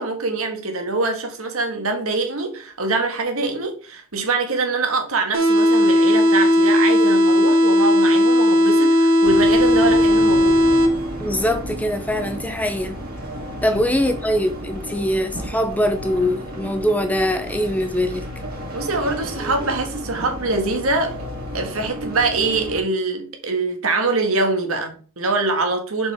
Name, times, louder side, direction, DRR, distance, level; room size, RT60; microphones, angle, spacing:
voice 1, 0.0-10.6 13.6-14.1 18.7-21.1 21.5-26.1, right 3 dB, 85° right, 1.7 m, -24 dB
sound 1, 5.3-11.3, left 1 dB, 70° right, 1.2 m, -16 dB
sound 2, 9.2-22.8, equal, 45° right, 2.6 m, -33 dB
voice 2, 11.2-13.0 13.6-18.2, equal, 5° left, 0.6 m, -22 dB
7.0 x 5.4 x 3.6 m
head